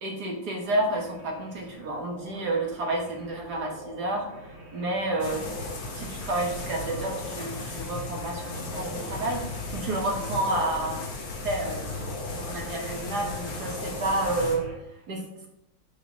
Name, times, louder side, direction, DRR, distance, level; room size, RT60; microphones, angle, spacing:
voice 1, 0.0-4.3 4.7-5.4 5.9-11.0 11.4-12.1 12.3-14.6 15.1-15.2, right 2 dB, 55° right, 1 dB, 1.7 m, -30 dB
sound 1, 0.6-14.8, equal, 30° right, 1.9 m, -42 dB
sound 2, 5.2-14.6, left 3 dB, 50° left, 1.6 m, -36 dB
7.2 x 3.9 x 6.2 m, 0.83 s
omnidirectional pair, 2.3 m